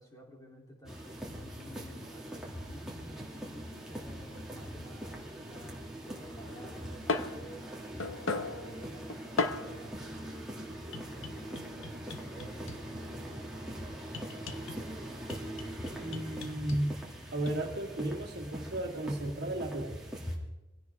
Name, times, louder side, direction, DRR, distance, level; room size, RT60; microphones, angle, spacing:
voice 1, 0.0-7.9 8.2-10.7 11.3-14.7 17.0-17.2, right 1 dB, 15° left, -1 dB, 3.2 m, -53 dB
sound 1, 0.8-20.4, equal, 5° right, 2.5 m, -42 dB
sound 2, 6.4-9.8 10.9-13.0 14.1-14.9 15.3-16.8 17.5-17.6, left 3 dB, 80° left, 1.1 m, -37 dB
voice 2, 16.0-17.0 17.3-20.1, right 1 dB, 55° right, -3 dB, 2.2 m, -34 dB
24.5 x 16.5 x 3.6 m, 1.0 s
head